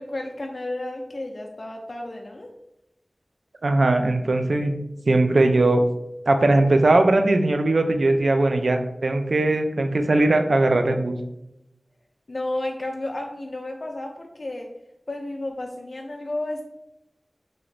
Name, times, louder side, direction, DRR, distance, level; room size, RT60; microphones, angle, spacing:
voice 1, 0.0-2.5 12.3-14.7 15.1-16.6, left 1 dB, 60° left, 1 dB, 0.3 m, -32 dB
voice 2, 3.6-4.8 5.1-5.8 6.3-11.2, right 2 dB, 90° right, 6 dB, 0.3 m, -19 dB
2.8 x 2.5 x 3.2 m, 0.85 s
wide cardioid pair, 60°, 0 cm